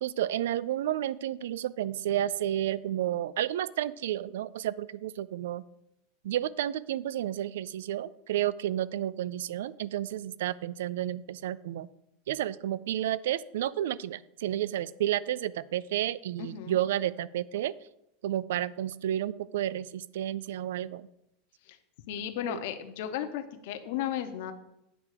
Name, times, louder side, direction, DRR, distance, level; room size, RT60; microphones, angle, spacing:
voice 1, 0.0-5.6 6.2-11.9 12.3-17.7 18.2-21.1 22.5-22.6, right 12 dB, 90° right, 19 dB, 0.3 m, -31 dB
voice 2, 16.4-16.8 21.6-21.8 22.1-24.5, left 10 dB, 55° left, 8 dB, 0.8 m, -35 dB
8.9 x 3.6 x 6.5 m, 0.83 s
supercardioid pair, 175°, 0 cm